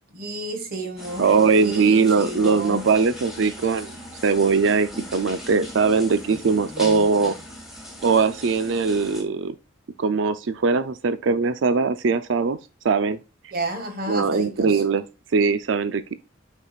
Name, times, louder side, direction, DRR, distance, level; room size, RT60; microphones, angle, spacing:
voice 1, 0.1-2.9 6.3-7.4 13.5-14.8, right 1 dB, 50° right, 1.6 m, -32 dB
sound 1, 1.0-9.2, equal, ahead, 2.0 m, -39 dB
voice 2, 1.2-3.9 4.2-7.4 8.0-9.5 10.0-12.6 12.8-13.2 14.1-15.0 15.3-16.1, right 4 dB, 70° right, 0.5 m, -21 dB
8.1 x 5.6 x 2.3 m
head